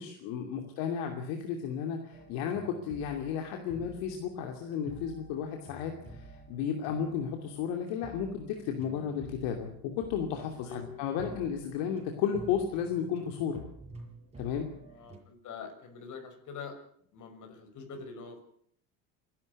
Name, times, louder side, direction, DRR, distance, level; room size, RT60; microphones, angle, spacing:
voice 1, 0.0-13.6 14.4-14.7, left 8 dB, 75° left, 4 dB, 2.8 m, -33 dB
sound 1, 2.1-15.2, right 2 dB, 15° right, 6.2 m, -51 dB
voice 2, 14.9-16.8 17.1-18.4, left 5 dB, 50° left, 6 dB, 6.2 m, -44 dB
28.0 x 12.5 x 8.3 m, 0.64 s
supercardioid pair, 100°, 38 cm